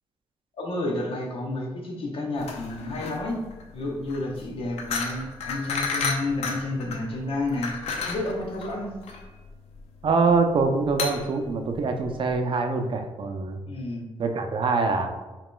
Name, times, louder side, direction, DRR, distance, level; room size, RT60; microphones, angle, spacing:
voice 1, 0.6-3.4 3.7-7.7 8.1-8.9 13.7-14.1, left 2 dB, 60° left, 0 dB, 0.9 m, -30 dB
sound 1, 2.4-12.4, left 4 dB, 85° left, 0.5 m, -33 dB
voice 2, 10.0-13.6 14.2-15.1, right 4 dB, 55° right, 5 dB, 0.5 m, -24 dB
4.8 x 3.0 x 2.2 m, 1.2 s
cardioid pair, 80°, 10 cm